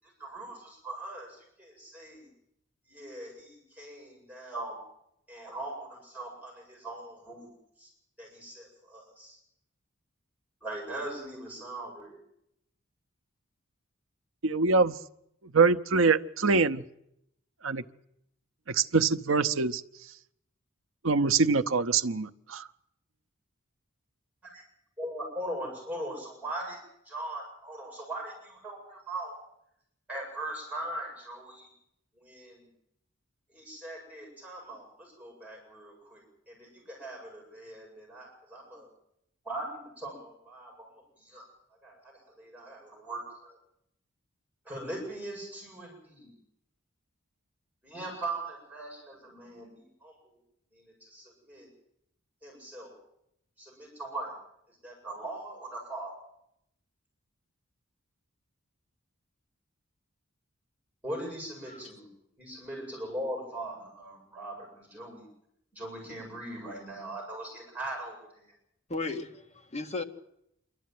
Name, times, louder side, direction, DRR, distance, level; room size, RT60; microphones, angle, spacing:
voice 1, 0.0-2.3 2.9-4.8 5.3-7.5 7.8-7.9 8.2-9.4 10.6-12.2 24.5-24.6 25.0-26.8 27.0-29.4 30.1-31.7 32.1-32.7 33.5-38.9 39.4-40.9 41.2-41.5 41.8-43.6 44.6-46.3 47.8-50.4 50.7-51.7 52.4-53.0 53.6-54.3 54.8-56.1 61.0-62.1 62.4-65.3 65.7-68.5, right 1 dB, 10° right, 7.9 m, -40 dB
voice 2, 14.4-14.9 15.4-16.8 17.6-17.8 18.7-19.8 21.0-22.6, right 4 dB, 70° right, 0.8 m, -24 dB
voice 3, 68.9-70.0, left 3 dB, 35° left, 1.7 m, -35 dB
26.0 x 12.5 x 9.4 m
head